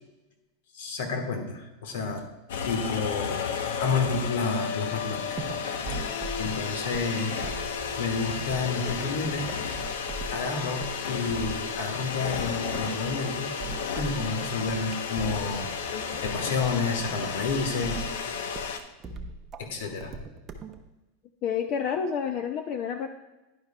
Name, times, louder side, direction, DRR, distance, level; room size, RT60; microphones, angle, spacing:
voice 1, 0.7-2.3 2.6-3.5 3.8-5.4 5.9-6.1 6.4-7.5 8.0-9.5 10.3-13.5 14.0-15.7 16.2-18.1 19.6-20.1, left 4 dB, 65° left, 5 dB, 1.5 m, -30 dB
sound 1, 2.5-18.8, left 6 dB, 85° left, 0.8 m, -33 dB
sound 2, 5.4-20.8, right 3 dB, 15° right, 0.6 m, -40 dB
voice 2, 21.4-23.1, left 7 dB, 30° left, 7 dB, 0.4 m, -29 dB
10.5 x 10.5 x 2.3 m, 1.1 s
supercardioid pair, 175°, 0 cm